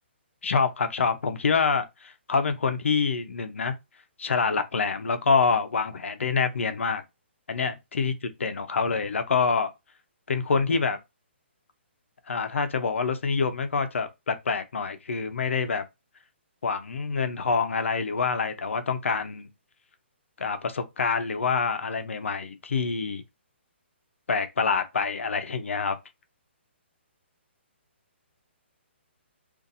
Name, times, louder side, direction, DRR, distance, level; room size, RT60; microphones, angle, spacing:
voice 1, 0.4-3.7 4.2-7.0 7.5-8.1 8.4-9.7 10.3-11.0 12.3-15.8 16.6-19.5 20.4-23.2 24.3-26.0, left 5 dB, 90° left, 0.7 m, -26 dB
2.6 x 2.5 x 4.0 m
hypercardioid pair, 180°, 7 cm